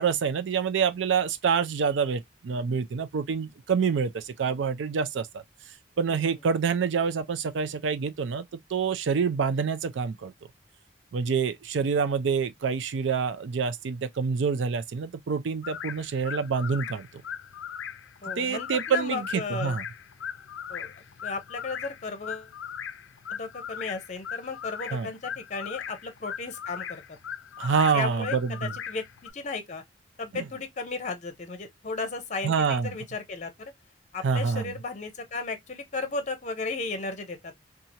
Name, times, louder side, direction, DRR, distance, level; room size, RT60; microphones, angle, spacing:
voice 1, 0.0-5.4 6.0-8.4 8.7-10.3 11.1-17.1 18.4-19.8 24.9-25.1 27.6-28.7 30.3-30.5 32.4-32.9 34.2-34.7, right 6 dB, 75° right, 0.4 m, -27 dB
sound 1, 15.6-29.3, left 8 dB, 80° left, 0.4 m, -39 dB
voice 2, 18.2-19.8 20.7-20.9 21.2-22.5 23.3-27.2 27.9-29.8 30.2-33.5 34.1-37.5, left 3 dB, 40° left, 0.6 m, -35 dB
2.8 x 2.4 x 2.7 m
head